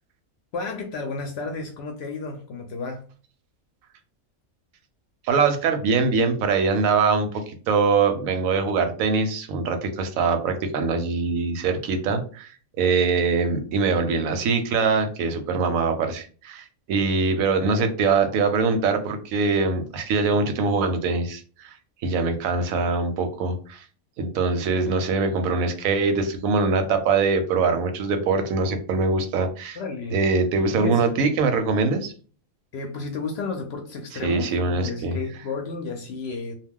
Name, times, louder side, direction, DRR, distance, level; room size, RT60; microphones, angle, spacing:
voice 1, 0.5-3.0 29.7-30.2 30.8-31.4 32.7-36.5, left 4 dB, 65° left, 4 dB, 0.7 m, -32 dB
voice 2, 5.3-7.3 7.7-12.5 12.8-21.7 22.0-23.8 24.2-29.8 30.1-32.1 34.2-35.2, right 4 dB, 85° right, 7 dB, 1.0 m, -23 dB
2.2 x 2.2 x 3.5 m, 0.40 s
omnidirectional pair, 1.4 m